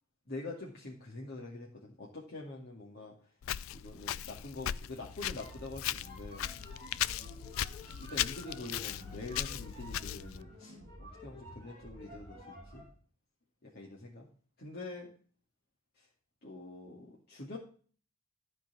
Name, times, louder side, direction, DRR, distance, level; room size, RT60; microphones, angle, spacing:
voice 1, 0.3-3.2 3.7-6.5 7.0-7.2 8.0-12.4 12.7-12.9 13.6-14.3 14.6-15.1 16.0-16.1 16.4-17.6, left 2 dB, 50° left, -4 dB, 2.2 m, -45 dB
Walk footsteps, 3.4-10.4, left 11 dB, 70° left, 0.4 m, -38 dB
sound 1, 5.1-13.0, equal, 20° left, 5.8 m, -51 dB
13.5 x 4.7 x 6.1 m, 0.42 s
head